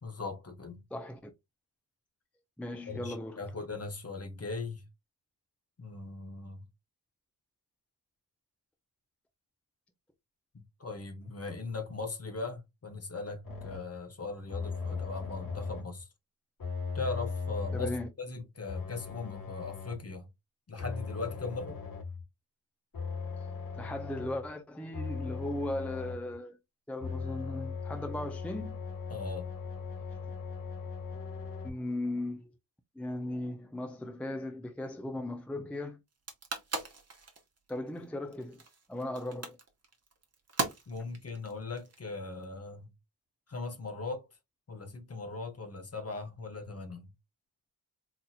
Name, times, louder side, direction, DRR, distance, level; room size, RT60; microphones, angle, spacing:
voice 1, 0.0-0.8 2.9-4.8 5.8-6.6 10.5-16.1 16.9-17.9 18.2-20.3 20.7-21.8 29.1-29.5 40.9-42.9 43.5-44.3 44.7-47.1, left 3 dB, 40° left, 0.9 m, -39 dB
voice 2, 0.9-1.3 2.6-3.4 17.7-18.1 23.7-26.6 26.9-28.8 31.6-32.5 33.0-36.0 37.7-38.6 38.9-39.6, left 1 dB, 5° left, 0.4 m, -37 dB
sound 1, 13.4-14.0 14.5-16.0 16.6-18.1 18.7-20.1 20.8-22.2 22.9-24.5 24.9-26.3 27.0-31.7, left 5 dB, 60° left, 1.5 m, -38 dB
sound 2, 36.1-42.4, right 3 dB, 40° right, 1.0 m, -39 dB
4.1 x 2.8 x 2.3 m
wide cardioid pair, 120°, 39 cm